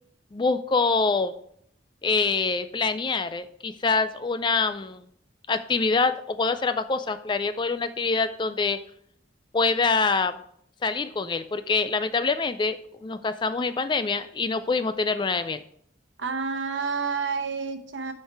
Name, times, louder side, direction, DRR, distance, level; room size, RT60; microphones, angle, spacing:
voice 1, 0.3-1.4 2.0-5.0 5.5-8.8 9.5-10.4 10.8-15.6, left 4 dB, 25° left, 11 dB, 0.3 m, -25 dB
voice 2, 16.2-18.1, right 5 dB, 80° right, 7 dB, 0.9 m, -29 dB
8.1 x 4.5 x 4.7 m, 0.66 s
head